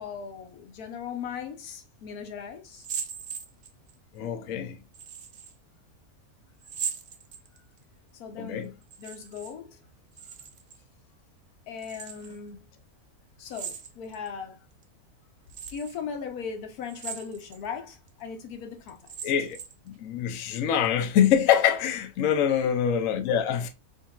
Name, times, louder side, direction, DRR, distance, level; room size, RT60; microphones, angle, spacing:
voice 1, 0.0-2.9 8.1-9.8 11.7-12.7 13.4-14.6 15.7-19.3 22.4-22.7, left 6 dB, 90° left, 1.3 m, -38 dB
sound 1, 2.7-3.9 4.9-5.5 6.6-7.8 8.8-9.5 9.8-10.8 11.8-12.4 13.5-14.3 14.8-14.9 15.5-16.0 16.8-17.6 18.1-18.2 18.9-19.9, right 7 dB, 55° right, 0.8 m, -39 dB
voice 2, 4.1-4.8 8.4-8.7 19.2-19.6 19.9-23.7, left 9 dB, 70° left, 0.9 m, -24 dB
5.0 x 2.7 x 2.3 m
omnidirectional pair, 1.5 m